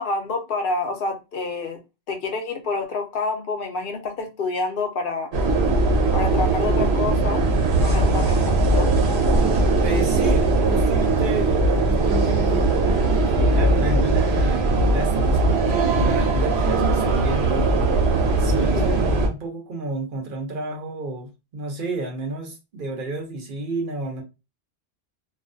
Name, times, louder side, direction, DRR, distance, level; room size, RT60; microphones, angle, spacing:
voice 1, 0.0-1.8 2.1-5.3 6.1-7.4 7.8-8.9 18.5-19.0, left 3 dB, 65° left, 0.7 m, -28 dB
sound 1, 5.3-19.3, right 2 dB, 90° right, 0.9 m, -20 dB
voice 2, 9.8-17.7 18.4-24.2, right 2 dB, 60° right, 0.8 m, -32 dB
2.3 x 2.2 x 2.5 m
omnidirectional pair, 1.1 m